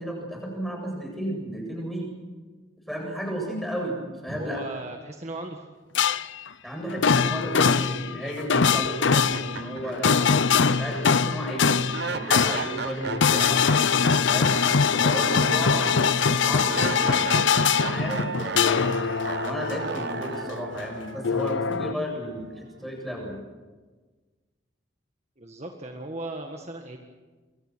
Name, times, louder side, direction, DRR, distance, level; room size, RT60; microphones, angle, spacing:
voice 1, 0.0-2.1 2.9-4.0 4.2-4.6 6.6-11.8 12.1-13.7 14.3-14.6 15.0-17.3 17.8-19.0 19.4-23.4, equal, ahead, 0 dB, 8.0 m, -33 dB
voice 2, 4.3-5.6 25.4-27.0, right 2 dB, 35° right, 2 dB, 1.7 m, -36 dB
sound 1, 6.0-6.5 6.9-20.9 21.2-21.9, left 6 dB, 70° left, 0.7 m, -23 dB
sound 2, 8.8-8.9 9.3-22.4, right 4 dB, 55° right, 0.8 m, -35 dB
28.5 x 23.5 x 6.4 m, 1.3 s
head